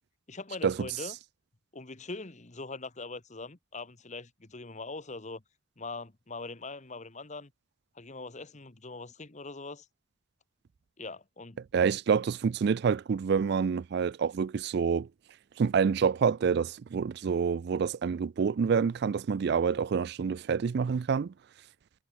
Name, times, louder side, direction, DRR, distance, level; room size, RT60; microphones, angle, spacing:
voice 1, 0.3-1.1 1.7-5.4 5.8-7.5 7.9-9.9 11.0-11.6, left 3 dB, 35° left, 1.4 m, -42 dB
voice 2, 11.7-15.1 15.6-21.3, right 6 dB, 55° right, 0.4 m, -27 dB
head